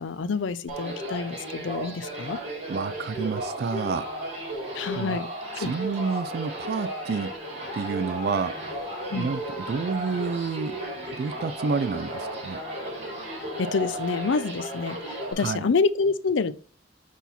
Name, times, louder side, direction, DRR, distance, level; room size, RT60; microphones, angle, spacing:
voice 1, 0.0-2.4 4.7-5.3 5.6-5.7 9.1-9.3 13.6-16.5, left 4 dB, 85° left, 0.5 m, -27 dB
sound 1, 0.7-15.3, right 1 dB, 40° right, 3.7 m, -34 dB
voice 2, 2.7-4.1 5.0-5.2 5.6-7.3 7.7-8.6 9.1-10.8 11.2-12.6 15.4-15.7, right 5 dB, 55° right, 0.3 m, -29 dB
6.1 x 4.2 x 4.1 m
head